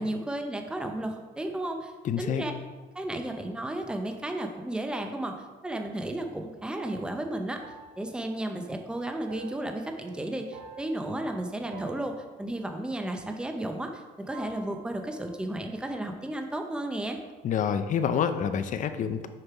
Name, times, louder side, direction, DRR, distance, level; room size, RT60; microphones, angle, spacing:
voice 1, 0.0-2.5 2.9-7.6 8.0-17.2, right 1 dB, 5° right, 4 dB, 0.7 m, -33 dB
voice 2, 2.0-2.4 17.4-19.3, left 7 dB, 50° left, 10 dB, 0.6 m, -27 dB
sound 1, 5.1-14.0 14.3-16.4, right 3 dB, 85° right, 1.9 m, -50 dB
6.8 x 5.4 x 4.7 m, 1.3 s
cardioid pair, 110°, 17 cm